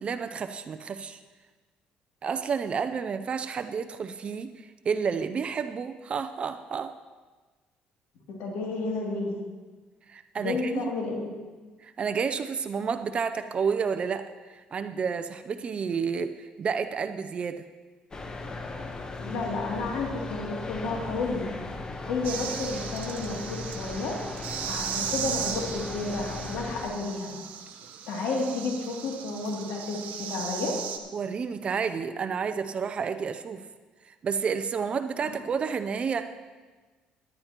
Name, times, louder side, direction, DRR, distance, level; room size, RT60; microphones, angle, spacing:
voice 1, 0.0-1.2 2.2-6.9 10.1-10.9 11.8-17.7 31.1-33.6 34.0-36.3, right 6 dB, 40° right, 10 dB, 0.5 m, -30 dB
voice 2, 8.3-9.3 10.4-11.3 19.2-21.5 22.0-24.1 24.7-27.3 28.1-30.7 35.2-35.3, left 3 dB, 80° left, -1 dB, 2.7 m, -31 dB
sound 1, 18.1-26.8, left 3 dB, 25° left, 1.0 m, -37 dB
sound 2, 22.2-31.0, right 8 dB, 70° right, 1.1 m, -37 dB
17.5 x 11.5 x 3.0 m, 1.3 s
cardioid pair, 110°, 3 cm